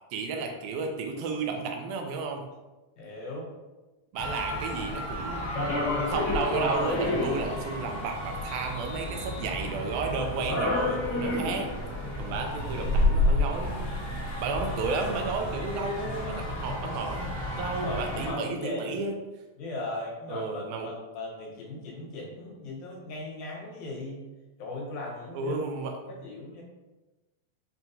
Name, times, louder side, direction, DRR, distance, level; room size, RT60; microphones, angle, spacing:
voice 1, 0.1-2.4 4.1-5.5 6.0-11.7 12.2-13.8 14.4-19.2 20.3-20.9 25.3-25.9, right 4 dB, 85° right, 3 dB, 2.0 m, -32 dB
voice 2, 3.0-3.5 12.1-12.6 17.7-19.0 19.6-24.2 24.6-25.6 26.1-26.6, left 2 dB, 75° left, -3 dB, 2.2 m, -38 dB
sound 1, 4.2-18.3, left 1 dB, 55° left, 1.4 m, -30 dB
5.8 x 2.2 x 2.7 m, 1.1 s
omnidirectional pair, 3.4 m